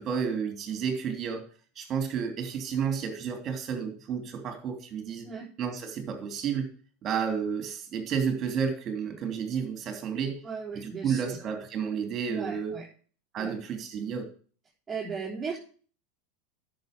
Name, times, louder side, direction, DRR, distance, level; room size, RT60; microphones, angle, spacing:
voice 1, 0.0-1.4 1.7-5.3 5.6-6.7 7.0-10.4 10.8-12.7 13.3-14.3, right 7 dB, 35° right, 4 dB, 3.2 m, -31 dB
voice 2, 10.4-11.4 12.3-12.8 13.4-13.5 14.9-15.6, right 5 dB, 20° right, -7 dB, 4.1 m, -36 dB
10.5 x 7.0 x 5.4 m, 0.42 s
hypercardioid pair, 90°, 0 cm